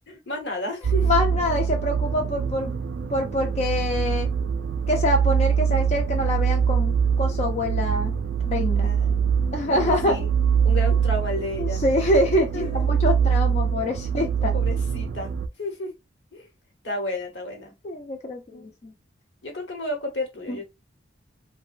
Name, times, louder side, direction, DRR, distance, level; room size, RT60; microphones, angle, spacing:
voice 1, 0.1-1.4 8.8-9.2 9.7-10.3 10.6-11.8 12.5-12.8 14.5-15.3 15.6-15.9 16.3-16.5 16.8-17.7 18.5-18.7 19.4-20.6, left 1 dB, 75° left, 1.0 m, -32 dB
sound 1, 0.8-15.5, right 7 dB, 65° right, 0.3 m, -24 dB
voice 2, 1.0-2.7 3.1-4.3 4.9-8.1 8.4-8.9 9.5-10.2 11.6-14.5 17.8-18.9 20.5-20.6, left 1 dB, 35° left, 0.4 m, -25 dB
2.9 x 2.1 x 2.4 m
head